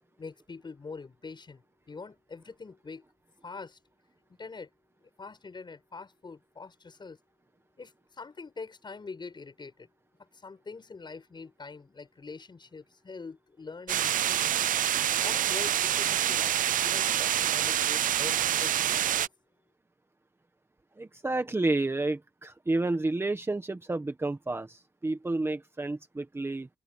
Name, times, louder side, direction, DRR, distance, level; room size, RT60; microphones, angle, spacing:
voice 1, 0.2-3.0 3.4-3.8 4.4-4.7 5.2-7.2 7.8-9.9 10.3-14.5 15.2-19.3, left 4 dB, 35° left, 7.4 m, -44 dB
sound 1, 13.9-19.3, right 11 dB, 85° right, 0.4 m, -26 dB
voice 2, 21.0-26.7, right 2 dB, 20° right, 1.5 m, -30 dB
wide cardioid pair, 145°, 14 cm